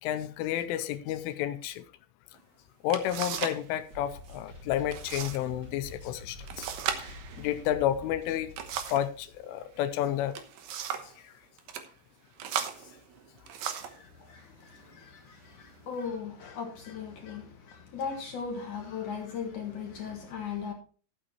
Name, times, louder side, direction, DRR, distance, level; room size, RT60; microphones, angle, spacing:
voice 1, 0.0-1.8 2.8-6.7 7.0-8.5 8.9-10.3 11.2-11.3, left 11 dB, 85° left, 3.1 m, -31 dB
sound 1, 2.4-2.5 2.9-3.6 3.9-4.4 4.9-5.4 5.7-5.8 6.5-9.1 10.1-11.2 11.6-11.9 12.4-14.0 14.8-15.0 15.5-16.0, right 8 dB, 85° right, 2.0 m, -36 dB
sound 2, 3.9-9.4, left 1 dB, 25° right, 4.2 m, -48 dB
voice 2, 13.8-20.7, left 6 dB, 65° left, 2.0 m, -38 dB
14.5 x 9.0 x 3.1 m
omnidirectional pair, 5.9 m